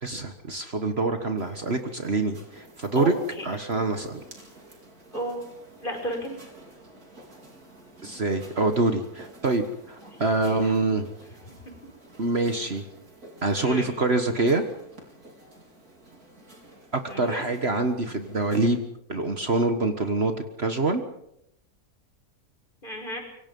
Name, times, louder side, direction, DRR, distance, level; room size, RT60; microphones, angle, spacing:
voice 1, 0.0-3.1 3.4-4.2 8.0-11.1 12.2-12.8 13.4-14.6 16.9-20.3 20.6-21.0, right 3 dB, 45° right, 6 dB, 1.7 m, -25 dB
sound 1, 1.4-18.8, right 1 dB, 80° right, 5.0 m, -50 dB
voice 2, 2.9-3.5 5.1-5.4 5.8-6.4 10.1-10.2 10.5-10.7 11.6-11.7 13.6-13.9 17.1-17.5 22.8-23.2, equal, 35° left, 3 dB, 5.8 m, -33 dB
26.5 x 23.5 x 5.5 m, 0.78 s
omnidirectional pair, 1.6 m